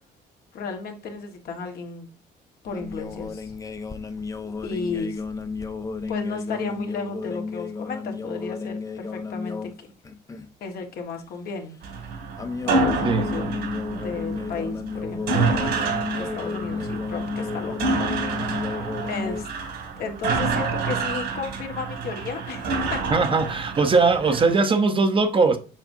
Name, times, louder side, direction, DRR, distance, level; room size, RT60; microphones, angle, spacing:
voice 1, 0.5-2.1 2.6-3.5 4.6-5.2 6.1-9.9 10.6-11.8 12.6-13.4 13.9-15.6 16.0-18.5 19.1-19.5 20.0-23.0, left 4 dB, 65° left, 1.5 m, -34 dB
sound 1, 2.7-9.7 10.0-10.5 12.4-19.4, left 4 dB, 20° left, 0.6 m, -32 dB
sound 2, 11.8-24.5, right 3 dB, 75° right, 2.2 m, -28 dB
voice 2, 23.1-25.6, right 4 dB, 30° right, 0.8 m, -20 dB
7.3 x 4.8 x 2.7 m
cardioid pair, 110°, 17 cm